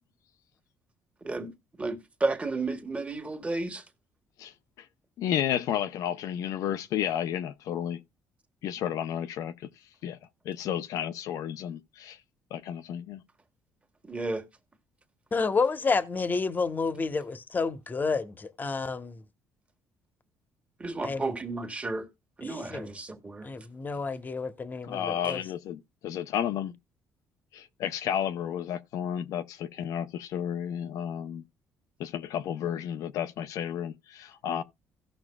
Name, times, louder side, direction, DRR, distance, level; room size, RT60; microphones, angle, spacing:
voice 1, 1.8-3.8 14.0-14.4 20.8-22.1 22.4-23.5, right 3 dB, 20° right, 1.6 m, -32 dB
voice 2, 4.4-4.9 5.2-8.0 8.6-9.7 10.0-10.2 10.4-12.2 12.5-13.2 24.9-26.7 27.5-31.4 32.0-34.6, left 10 dB, 75° left, 0.6 m, -32 dB
voice 3, 15.3-19.2 21.0-21.3 22.4-22.9 23.4-25.4, left 4 dB, 30° left, 1.0 m, -30 dB
16.5 x 5.9 x 2.3 m
supercardioid pair, 80°, 6 cm